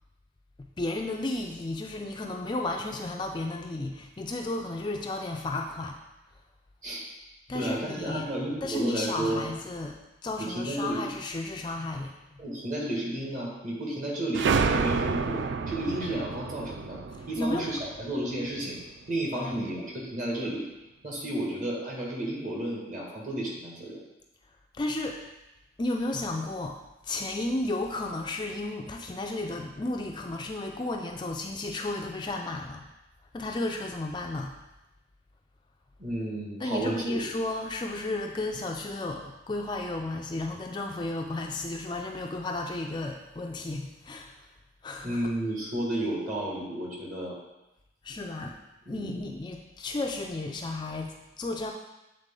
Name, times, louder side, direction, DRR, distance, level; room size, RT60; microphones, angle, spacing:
voice 1, 0.6-6.0 7.5-8.3 8.6-12.4 17.2-17.7 19.3-19.7 24.7-25.2 25.8-32.9 33.3-34.5 36.6-44.4 44.8-45.4 48.0-48.6 48.9-51.7, left 2 dB, 25° left, 2 dB, 0.4 m, -33 dB
voice 2, 7.5-9.5 10.4-11.1 12.4-18.8 19.1-20.6 21.0-24.0 36.0-37.2 45.0-47.4 48.9-49.3, right 1 dB, 45° right, -4 dB, 1.7 m, -32 dB
sound 1, 14.3-18.8, right 5 dB, 75° right, 0.3 m, -29 dB
8.1 x 4.0 x 3.7 m, 1.0 s
head